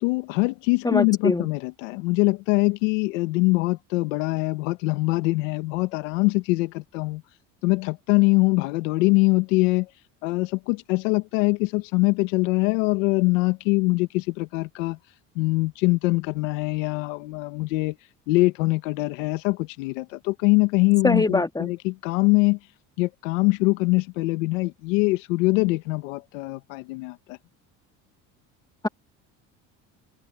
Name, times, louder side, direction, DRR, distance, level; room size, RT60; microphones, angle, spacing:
voice 1, 0.0-7.2 7.6-9.9 10.2-15.0 15.3-18.0 18.3-22.6 23.0-27.4, left 24 dB, 85° left, 1.7 m, -23 dB
voice 2, 0.8-1.5 21.0-21.7, left 2 dB, 10° left, 2.4 m, -23 dB
supercardioid pair, 80°, 37 cm